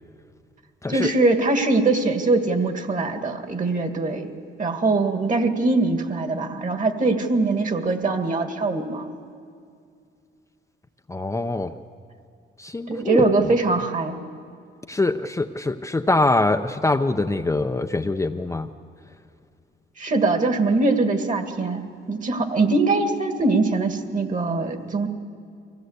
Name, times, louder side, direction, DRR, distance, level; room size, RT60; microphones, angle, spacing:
voice 1, 0.9-4.3 4.6-9.1 12.9-14.2 20.0-21.8 22.1-25.1, right 3 dB, 40° right, 6 dB, 2.1 m, -22 dB
voice 2, 11.1-11.8 12.6-13.2 14.9-18.7, left 2 dB, 15° left, 5 dB, 0.6 m, -23 dB
24.0 x 16.5 x 8.1 m, 2.3 s
cardioid pair, 90°, 20 cm